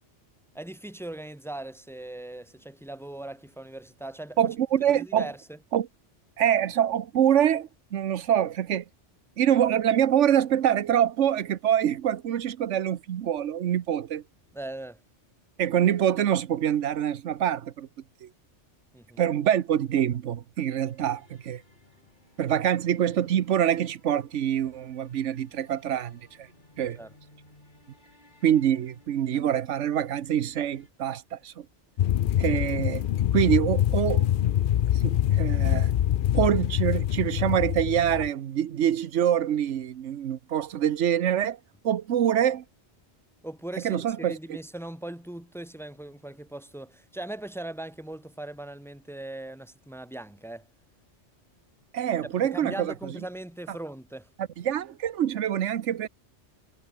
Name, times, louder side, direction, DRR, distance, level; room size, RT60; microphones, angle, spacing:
voice 1, 0.5-4.5 4.9-5.6 14.5-15.0 18.9-19.2 26.9-27.1 43.4-50.7 52.4-54.3, right 1 dB, ahead, 0.9 m, -39 dB
voice 2, 4.4-5.3 5.7-5.9 6.4-8.8 9.4-14.2 15.6-17.9 18.2-18.3 19.2-21.6 22.4-26.2 26.8-27.0 28.4-31.5 32.4-33.1 33.3-34.3 35.0-35.9 36.3-41.6 41.8-42.6 43.8-44.3 51.9-52.9 54.6-56.1, right 10 dB, 80° right, 1.2 m, -25 dB
sound 1, 20.8-30.9, left 1 dB, 40° left, 5.1 m, -59 dB
sound 2, 32.0-38.3, left 11 dB, 60° left, 0.6 m, -25 dB
omnidirectional pair, 1.2 m